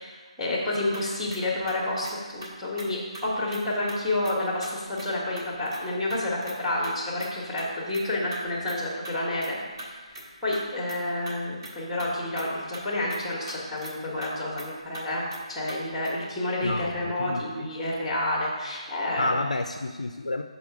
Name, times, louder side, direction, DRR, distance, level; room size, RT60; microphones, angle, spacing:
voice 1, 0.0-9.6 9.9-19.3, left 1 dB, 5° left, -5 dB, 1.1 m, -29 dB
sound 1, 0.9-2.5 2.8-2.9 3.1-3.3 3.5-3.6 3.9-4.0 4.2-4.3 4.6-5.1 5.3-5.8 6.1-6.6 6.8-6.9 7.2-7.7 7.9-8.0 8.3-8.4 8.7-8.8 9.0-9.1 9.4-9.9 10.1-10.2 10.5-11.3 11.6-11.7 12.0-12.8 13.1-13.2 13.5-13.9 14.2-14.3 14.6-14.7 14.9-15.0 15.3-15.4 15.7-15.8 16.0-16.1, right 1 dB, 45° right, 1.6 m, -41 dB
voice 2, 16.6-17.7 19.2-20.4, left 2 dB, 80° left, 7 dB, 0.3 m, -30 dB
5.9 x 4.0 x 4.7 m, 1.4 s
figure-of-eight pair, 145°, 4 cm